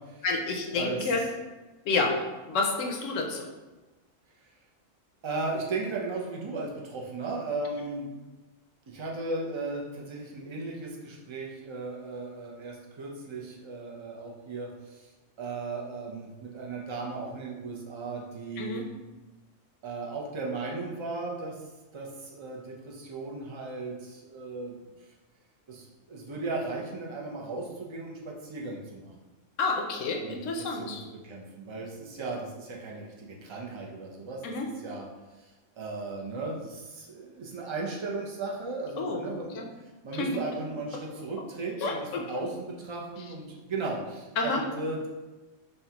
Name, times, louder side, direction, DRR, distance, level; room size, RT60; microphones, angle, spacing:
voice 1, 0.2-1.2 1.9-3.5 18.6-18.8 29.6-31.0 34.4-34.7 39.0-39.2 39.5-39.7 40.1-40.3 41.8-42.4 44.4-44.6, left 3 dB, 75° left, 1 dB, 1.0 m, -29 dB
voice 2, 5.2-8.1 8.9-15.1 15.4-18.9 19.8-24.9 25.7-29.1 30.2-34.4 34.8-35.1 35.3-39.6 40.0-45.1, right 3 dB, 35° right, -2 dB, 0.5 m, -36 dB
5.6 x 2.3 x 2.9 m, 1.2 s
omnidirectional pair, 1.3 m